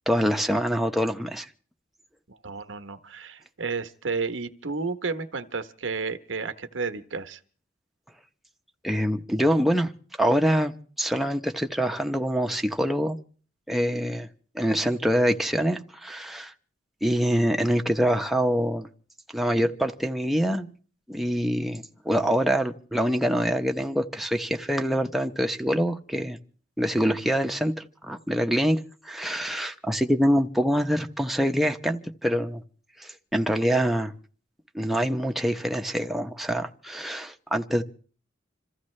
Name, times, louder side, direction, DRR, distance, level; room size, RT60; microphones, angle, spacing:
voice 1, 0.1-1.5 8.8-9.9 10.2-13.2 13.7-14.3 14.5-16.5 17.0-18.9 19.3-20.7 21.1-26.4 26.8-28.8 29.0-32.6 33.0-34.1 34.7-37.8, equal, ahead, 0.8 m, -25 dB
voice 2, 2.3-7.4, right 4 dB, 90° right, 1.0 m, -32 dB
27.0 x 15.0 x 3.2 m
head